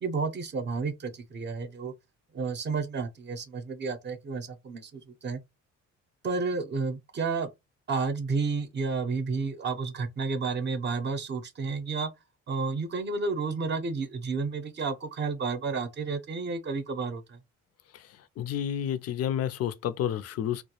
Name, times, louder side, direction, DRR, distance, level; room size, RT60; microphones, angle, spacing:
voice 1, 0.0-1.9 2.3-4.9 5.2-5.4 6.2-7.5 7.9-12.1 12.5-17.4, right 4 dB, 35° right, 0.6 m, -31 dB
voice 2, 18.4-20.6, left 9 dB, 55° left, 0.4 m, -30 dB
2.2 x 2.0 x 2.8 m
cardioid pair, 90°, 30 cm